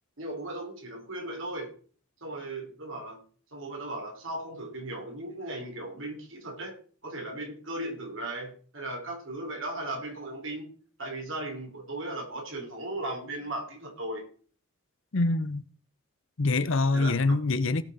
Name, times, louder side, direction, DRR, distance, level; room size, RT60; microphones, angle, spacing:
voice 1, 0.2-1.7 2.2-3.2 3.5-6.8 7.0-10.7 11.0-14.3 16.9-17.4, right 1 dB, 60° right, 3.4 m, -37 dB
voice 2, 15.1-15.6 16.4-17.8, left 3 dB, 60° left, 0.7 m, -25 dB
17.0 x 6.2 x 4.1 m
head